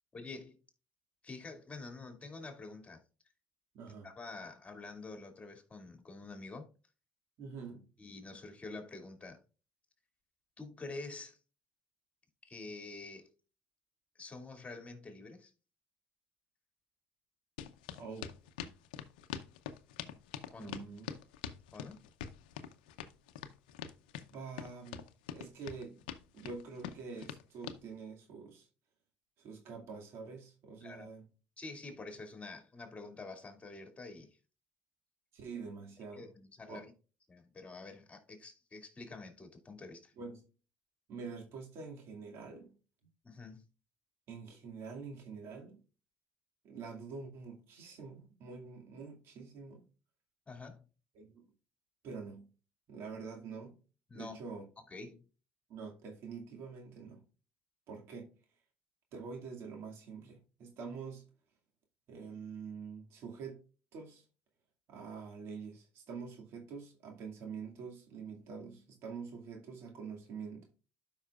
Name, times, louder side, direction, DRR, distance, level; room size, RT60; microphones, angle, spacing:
voice 1, 0.1-0.6 1.2-3.0 4.0-6.7 8.0-9.4 10.6-11.4 12.4-13.3 14.2-15.5 20.5-20.7 21.7-22.0 30.8-31.1 31.6-34.4 36.1-36.9 37.3-40.1 43.2-43.6 50.5-50.9 54.1-54.4 54.9-55.3, left 3 dB, 25° left, 2.3 m, -47 dB
voice 2, 3.7-4.1 7.4-7.9 18.0-18.3 20.6-21.1 24.3-25.1 25.3-26.0 26.3-28.7 29.4-31.3 35.3-36.3 36.7-36.8 40.2-40.4 41.1-42.7 44.3-45.8 46.6-49.8 51.1-51.3 52.0-52.5 52.9-53.8 54.1-54.7 55.7-57.2 57.9-58.3 59.1-61.3 62.1-63.6 63.9-64.2 64.9-70.7, right 5 dB, 70° right, 2.2 m, -46 dB
sound 1, 17.6-27.8, left 9 dB, 90° left, 0.6 m, -44 dB
12.5 x 5.5 x 2.4 m
supercardioid pair, 65°, 5 cm